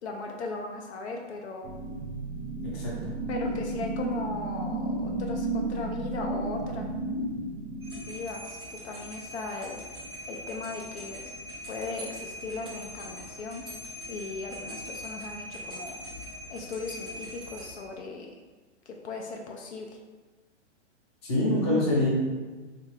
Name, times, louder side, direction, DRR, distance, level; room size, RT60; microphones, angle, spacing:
voice 1, 0.0-1.7 3.3-6.9 8.0-11.3 11.7-13.6 14.1-16.0 16.5-18.4 18.9-20.0, left 3 dB, 65° left, 1 dB, 0.5 m, -38 dB
sound 1, 1.6-8.4, right 2 dB, 85° right, 0.7 m, -33 dB
voice 2, 2.6-3.1 21.2-22.1, left 1 dB, 20° left, -6 dB, 0.6 m, -25 dB
sound 2, 7.8-17.7, equal, 25° right, 0.3 m, -42 dB
3.3 x 2.4 x 3.2 m, 1.3 s
hypercardioid pair, 170°, 36 cm